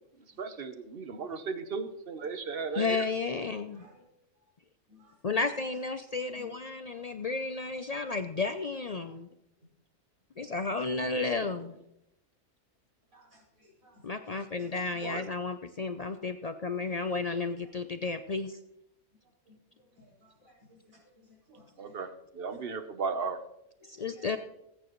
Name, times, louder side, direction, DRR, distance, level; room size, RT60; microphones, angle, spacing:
voice 1, 0.4-3.1 15.0-15.3 21.8-22.1 22.3-23.4, right 5 dB, 50° right, 8 dB, 1.1 m, -35 dB
voice 2, 2.7-3.8 5.2-9.3 10.4-11.8 14.0-18.6 23.9-24.4, left 3 dB, 60° left, 8 dB, 0.4 m, -32 dB
voice 3, 13.1-14.0 14.6-15.1 19.5-19.6 20.0-22.0 22.5-22.6 23.9-24.4, left 3 dB, 85° right, -4 dB, 5.2 m, -58 dB
19.5 x 9.0 x 3.1 m, 0.82 s
omnidirectional pair, 1.4 m